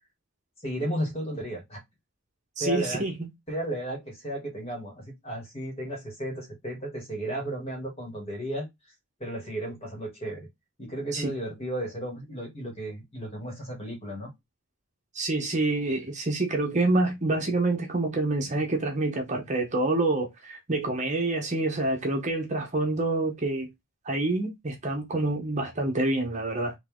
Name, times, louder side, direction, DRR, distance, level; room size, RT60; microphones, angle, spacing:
voice 1, 0.6-1.8 2.6-3.0 3.5-8.7 9.2-10.5 10.8-14.3, right 1 dB, 30° left, 2.1 m, -34 dB
voice 2, 2.6-3.3 11.1-11.3 15.1-23.7 24.0-26.7, right 2 dB, 35° right, 1.0 m, -27 dB
4.2 x 3.0 x 3.7 m
head